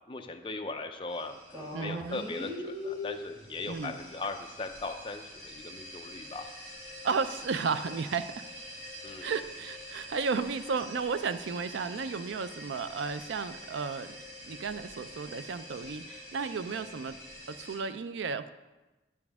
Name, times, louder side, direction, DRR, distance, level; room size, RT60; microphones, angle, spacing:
voice 1, 0.1-6.5 9.0-9.3, left 3 dB, 25° left, 5 dB, 0.5 m, -39 dB
sound 1, 1.1-17.8, left 1 dB, 20° right, 1.9 m, -44 dB
voice 2, 1.7-2.2 3.7-3.9 7.0-8.3 9.2-14.2 14.4-17.2 17.6-18.5, right 5 dB, 85° right, 12 dB, 0.4 m, -33 dB
9.6 x 7.0 x 3.5 m, 1.1 s
head